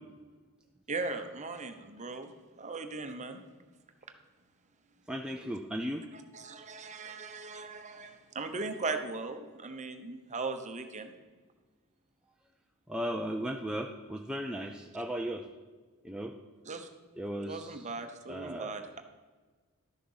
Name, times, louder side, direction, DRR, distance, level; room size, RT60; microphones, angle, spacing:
voice 1, 0.9-3.4 6.1-11.1 16.6-16.9 17.5-19.0, right 3 dB, 30° right, 6 dB, 0.9 m, -38 dB
voice 2, 5.1-6.1 7.0-7.2 12.9-15.4 16.0-16.3 17.2-17.8 18.3-18.8, equal, 5° right, 1 dB, 0.5 m, -36 dB
12.0 x 6.7 x 5.6 m, 1.4 s
head